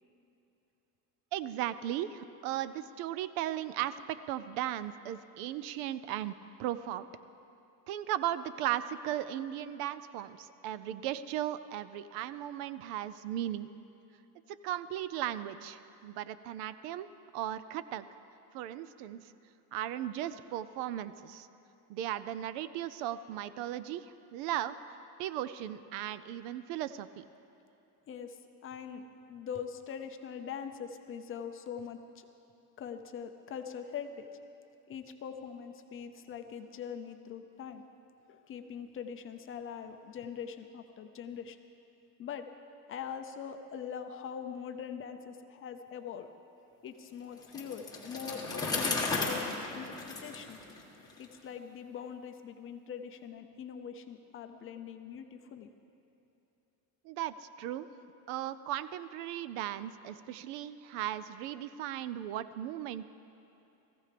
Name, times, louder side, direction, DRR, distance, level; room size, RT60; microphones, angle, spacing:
voice 1, 1.3-6.3 6.6-7.1 7.9-13.7 14.5-17.1 17.3-18.0 18.5-19.3 19.7-21.5 21.9-24.8 25.2-27.2 57.0-57.9 58.3-63.1, right 12 dB, 70° right, 14 dB, 0.6 m, -36 dB
voice 2, 28.1-29.0 29.3-32.3 32.8-34.3 34.9-37.8 38.3-41.6 42.2-42.5 42.9-46.3 46.8-50.6 51.2-55.7, left 7 dB, 30° left, 7 dB, 0.5 m, -42 dB
Bicycle, 47.4-51.2, left 3 dB, 10° left, 1.6 m, -35 dB
19.0 x 15.0 x 3.4 m, 2.9 s
cardioid pair, 140°, 46 cm